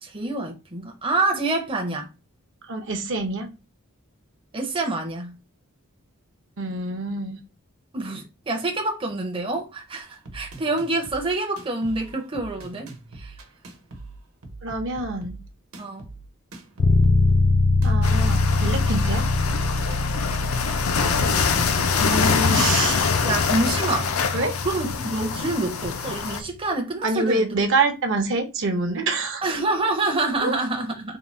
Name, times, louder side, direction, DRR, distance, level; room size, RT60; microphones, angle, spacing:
voice 1, 0.0-2.1 4.5-5.4 7.9-13.3 15.8-16.1 20.9-21.9 23.2-24.4 24.6-27.5 29.4-31.2, right 2 dB, 25° right, 0.6 m, -27 dB
voice 2, 2.7-3.5 6.6-7.4 14.6-15.4 17.8-19.3 22.0-23.1 24.3-24.5 27.0-29.4 30.4-30.5, right 3 dB, 60° right, 0.8 m, -26 dB
sound 1, 10.0-21.8, right 2 dB, 85° right, 1.0 m, -42 dB
sound 2, 16.8-26.5, left 3 dB, 40° left, 0.4 m, -24 dB
sound 3, 18.0-26.4, left 5 dB, 85° left, 0.6 m, -25 dB
3.7 x 2.2 x 4.2 m
head